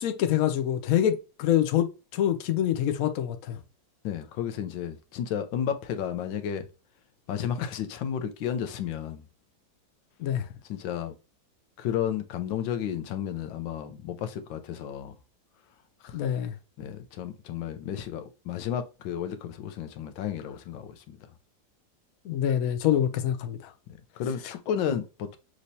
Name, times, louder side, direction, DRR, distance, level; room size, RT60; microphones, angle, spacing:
voice 1, 0.0-3.6 10.2-10.4 16.1-16.5 22.2-23.6, left 10 dB, 65° left, 0.9 m, -26 dB
voice 2, 4.0-6.7 7.3-9.2 10.7-11.1 11.8-15.1 16.0-16.2 16.8-21.2 24.2-25.4, left 9 dB, 90° left, 1.5 m, -32 dB
6.4 x 3.0 x 2.7 m
omnidirectional pair, 2.0 m